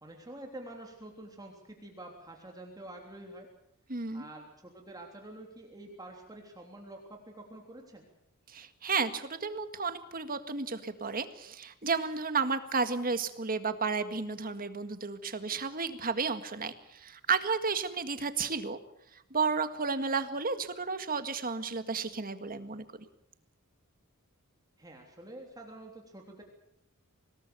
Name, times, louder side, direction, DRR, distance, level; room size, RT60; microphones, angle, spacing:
voice 1, 0.0-3.5 4.1-8.1 24.8-26.4, right 1 dB, 15° right, 1 dB, 3.3 m, -47 dB
voice 2, 3.9-4.2 8.5-18.8 19.1-22.8, right 4 dB, 40° right, 10 dB, 1.8 m, -32 dB
25.5 x 19.5 x 6.9 m, 0.79 s
head